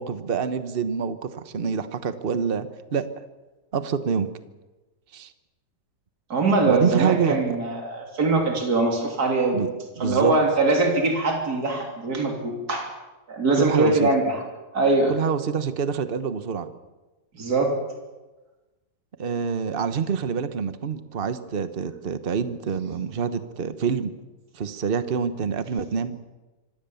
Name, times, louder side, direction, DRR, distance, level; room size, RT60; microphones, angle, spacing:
voice 1, 0.0-3.1 3.7-4.3 5.1-5.3 6.7-7.4 9.5-10.4 13.6-14.1 15.1-16.7 19.2-24.2 24.5-26.2, right 6 dB, 35° right, 11 dB, 1.1 m, -26 dB
voice 2, 6.3-9.6 10.0-12.9 13.3-14.4 14.7-15.1 17.4-17.8, right 3 dB, 60° right, 1 dB, 3.6 m, -22 dB
25.0 x 17.0 x 7.1 m, 1.1 s
omnidirectional pair, 1.9 m